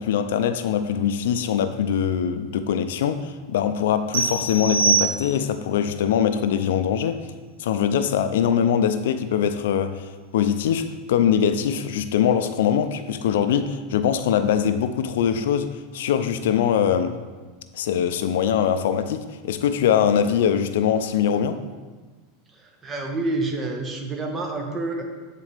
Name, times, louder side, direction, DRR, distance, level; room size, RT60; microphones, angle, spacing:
voice 1, 0.0-7.2 7.6-17.2 17.7-21.6, left 8 dB, 80° left, 0.4 m, -22 dB
sound 1, 4.1-5.7, right 5 dB, 85° right, 1.1 m, -23 dB
voice 2, 22.6-25.0, right 2 dB, 25° right, 1.0 m, -28 dB
9.2 x 4.1 x 3.4 m
supercardioid pair, 125°, 0 cm